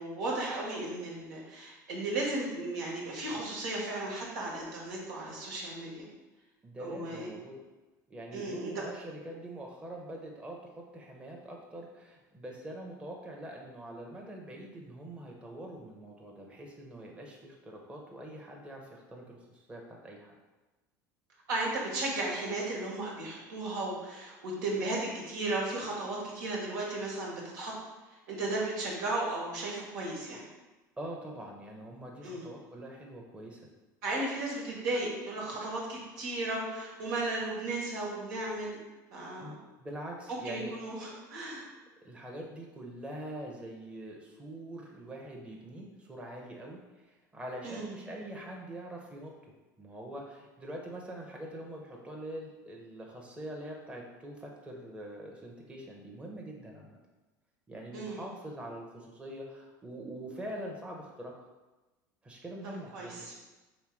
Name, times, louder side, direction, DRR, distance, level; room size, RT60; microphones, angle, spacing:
voice 1, 0.0-6.0 6.8-7.3 8.3-8.8 21.5-27.7 28.3-30.5 32.2-32.4 34.0-38.8 39.1-39.5 40.4-41.7 47.6-47.9 57.9-58.2 62.9-63.3, right 2 dB, 80° right, -3 dB, 1.3 m, -35 dB
voice 2, 6.6-7.5 8.1-20.3 31.0-33.7 39.4-40.7 42.0-49.5 49.8-57.0 57.7-61.5 62.2-63.3, right 1 dB, 10° right, -1 dB, 0.8 m, -44 dB
3.3 x 3.1 x 4.8 m, 1.1 s
hypercardioid pair, 90°, 10 cm